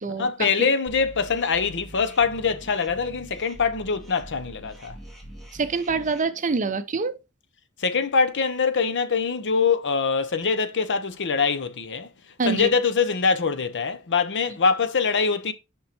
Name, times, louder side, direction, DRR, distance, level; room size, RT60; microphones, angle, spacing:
voice 1, 0.1-5.0 7.8-12.1 12.4-15.5, left 5 dB, 55° left, 0.8 m, -23 dB
sound 1, 0.9-6.2, right 1 dB, ahead, 1.9 m, -44 dB
voice 2, 5.5-7.2 12.4-12.7, right 4 dB, 35° right, 0.7 m, -25 dB
5.8 x 5.5 x 4.4 m
head